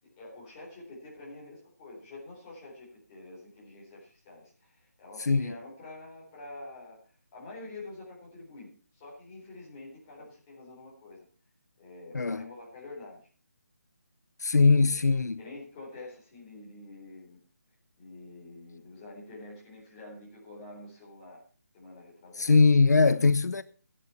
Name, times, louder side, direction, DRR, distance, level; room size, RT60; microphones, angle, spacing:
voice 1, 0.0-7.0 7.3-11.2 11.8-13.3 14.9-15.0 15.4-17.4 18.0-21.4 21.7-22.5, left 2 dB, 15° left, 4.1 m, -47 dB
voice 2, 5.2-5.6 12.1-12.5 14.4-15.4 22.4-23.6, left 4 dB, 85° left, 0.8 m, -21 dB
14.5 x 11.0 x 4.4 m
hypercardioid pair, 175°, 9 cm